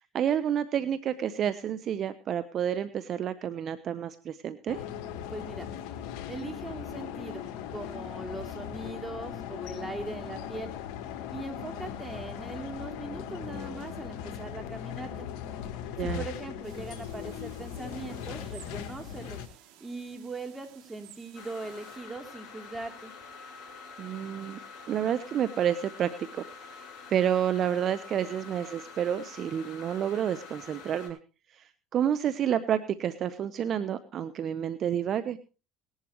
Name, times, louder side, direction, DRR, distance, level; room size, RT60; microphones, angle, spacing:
voice 1, 0.1-4.8 16.0-16.2 24.0-24.6 24.9-26.1 26.4-31.2 31.5-31.6 31.9-35.4, right 9 dB, 45° right, 12 dB, 0.9 m, -29 dB
sound 1, 4.7-19.5, left 9 dB, 70° left, 1.7 m, -39 dB
voice 2, 5.3-5.7 6.3-7.4 7.7-10.7 11.3-15.3 16.0-19.4 19.8-23.1, right 3 dB, 15° right, 4 dB, 3.4 m, -40 dB
sound 2, 16.6-22.0, right 10 dB, 70° right, 2.7 m, -55 dB
sound 3, 21.3-31.1, left 5 dB, 50° left, 6.0 m, -47 dB
19.0 x 11.5 x 3.1 m, 0.33 s
supercardioid pair, 95°, 0 cm